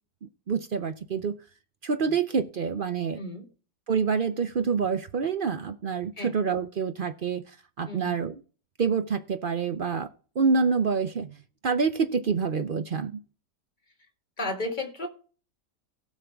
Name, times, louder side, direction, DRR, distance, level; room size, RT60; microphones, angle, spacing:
voice 1, 0.2-1.4 1.8-3.2 3.9-7.4 7.8-8.3 8.8-10.1 10.4-11.4 11.6-13.2, right 5 dB, 65° right, 10 dB, 0.5 m, -27 dB
voice 2, 3.2-3.5 6.2-6.3 7.9-8.1 14.4-15.1, left 2 dB, 30° left, 5 dB, 1.8 m, -33 dB
17.5 x 6.3 x 3.4 m, 0.38 s
omnidirectional pair, 1.8 m